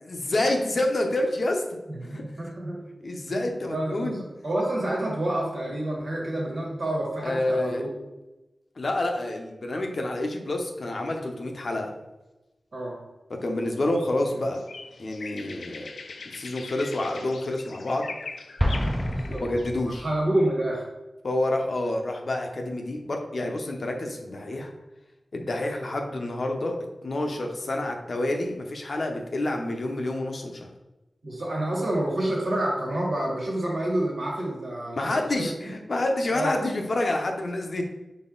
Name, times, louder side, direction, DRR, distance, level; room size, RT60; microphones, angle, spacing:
voice 1, 0.0-1.6 2.0-2.2 3.0-4.2 7.2-7.8 8.8-11.9 13.3-14.6 15.0-15.9 16.3-18.1 19.3-20.0 21.2-24.7 25.3-26.8 27.0-30.7 35.0-37.8, left 1 dB, 70° left, 2 dB, 0.7 m, -28 dB
voice 2, 1.9-2.8 3.3-7.9 12.7-13.0 19.2-19.4 19.8-20.9 31.2-35.5 36.3-36.5, right 1 dB, 75° right, -4 dB, 1.6 m, -28 dB
sound 1, 13.4-19.7, left 4 dB, 85° left, 0.3 m, -42 dB
Explosion, 18.6-20.4, equal, 5° right, 0.5 m, -28 dB
4.1 x 3.4 x 3.8 m, 1.0 s
cardioid pair, 40°, 0 cm